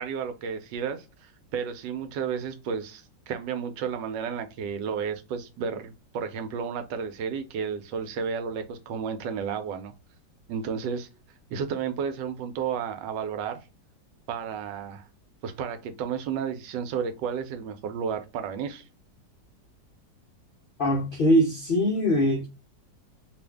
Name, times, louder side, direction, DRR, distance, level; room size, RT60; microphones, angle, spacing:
voice 1, 0.0-9.9 10.5-11.1 11.5-13.6 14.3-15.0 15.4-18.8, right 7 dB, 85° right, 1.3 m, -32 dB
voice 2, 20.8-22.5, equal, 70° left, 0.5 m, -22 dB
2.8 x 2.5 x 3.3 m
omnidirectional pair, 1.9 m